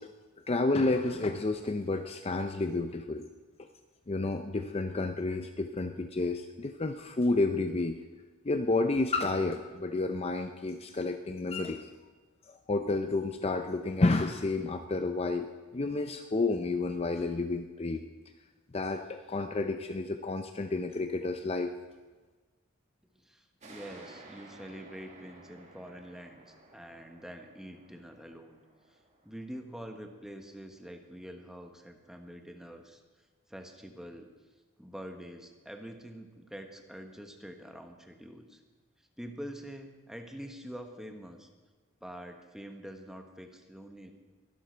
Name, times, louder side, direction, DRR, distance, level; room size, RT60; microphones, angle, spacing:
voice 1, 0.5-3.3 4.1-8.0 8.4-11.9 12.5-18.0 18.7-21.7, left 3 dB, 30° left, 7 dB, 0.6 m, -30 dB
voice 2, 23.1-28.6 29.2-33.0 33.5-34.3 34.8-38.6 39.2-41.5 42.0-44.1, equal, ahead, 4 dB, 1.2 m, -45 dB
sound 1, 23.6-30.8, right 2 dB, 35° right, 2.3 m, -55 dB
22.5 x 12.0 x 4.5 m, 1.3 s
head